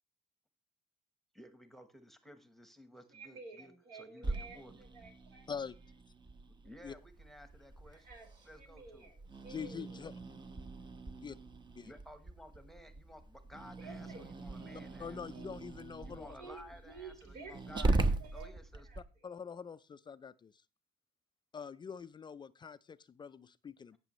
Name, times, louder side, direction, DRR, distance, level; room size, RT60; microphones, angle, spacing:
voice 1, 1.3-4.8 6.6-8.1 8.4-9.1 11.9-15.2 16.0-18.9, equal, ahead, 9 dB, 1.1 m, -55 dB
voice 2, 3.1-5.5 7.9-10.0 13.8-14.3 14.5-14.9 15.3-15.6 16.2-18.6 18.9-19.0, right 4 dB, 75° right, 1 dB, 4.6 m, -52 dB
Growling, 4.2-19.0, right 2 dB, 25° right, 0.9 m, -40 dB
voice 3, 9.5-10.1 11.2-11.3 11.8-11.9 15.0-16.6 19.0-20.6 21.5-24.0, left 6 dB, 25° left, 14 dB, 0.4 m, -45 dB
17.0 x 6.1 x 3.1 m, 0.30 s
cardioid pair, 110°, 17 cm